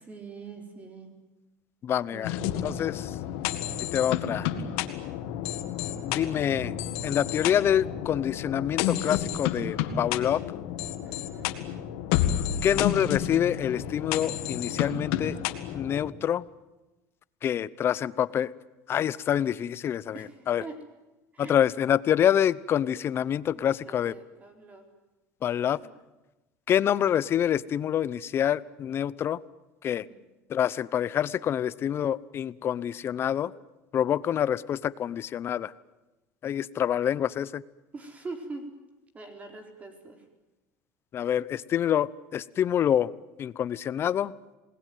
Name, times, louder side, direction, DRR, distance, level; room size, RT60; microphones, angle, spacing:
voice 1, 0.1-1.1 2.1-2.4 11.0-11.6 20.1-20.8 21.3-21.6 23.9-24.9 25.6-25.9 30.1-30.2 37.9-38.7 39.1-40.2, right 3 dB, 25° right, 5 dB, 4.2 m, -43 dB
voice 2, 1.8-2.4 2.6-3.2 3.9-4.5 6.0-6.7 7.0-10.4 12.6-15.4 15.7-16.4 17.4-18.5 18.9-20.6 21.4-24.2 25.4-25.8 26.7-29.4 29.8-30.1 30.5-33.5 33.9-35.7 36.4-37.6 41.1-43.1 43.4-44.3, left 10 dB, 40° left, 19 dB, 0.9 m, -26 dB
sound 1, 2.2-16.1, left 10 dB, 85° left, 2.0 m, -31 dB
28.0 x 20.0 x 9.4 m, 1.0 s
cardioid pair, 130°, 6 cm